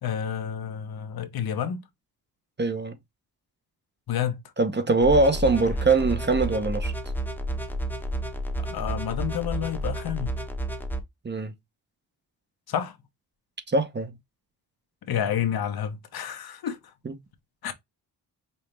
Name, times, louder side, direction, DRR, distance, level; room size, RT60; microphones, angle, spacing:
voice 1, 0.0-1.8 4.1-4.4 8.6-10.3 12.7-13.0 15.1-16.9 17.6-17.7, left 9 dB, 65° left, 0.8 m, -29 dB
voice 2, 2.6-3.0 4.6-6.9 11.2-11.5 13.7-14.1 17.1-17.2, right 3 dB, 25° right, 0.8 m, -22 dB
sound 1, 5.0-11.0, right 1 dB, 5° left, 0.8 m, -31 dB
5.4 x 2.0 x 3.2 m
cardioid pair, 70°, 40 cm